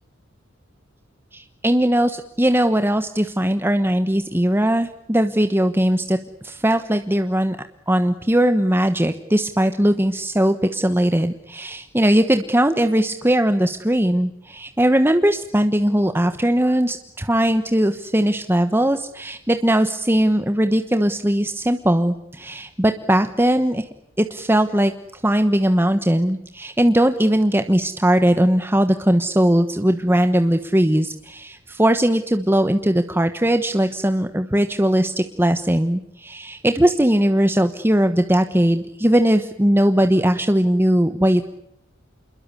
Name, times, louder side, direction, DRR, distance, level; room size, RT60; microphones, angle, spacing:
voice 1, 1.3-6.2 6.4-7.6 7.9-23.9 24.2-41.5, right 1 dB, 10° right, 8 dB, 1.2 m, -19 dB
29.0 x 21.5 x 8.4 m, 0.77 s
head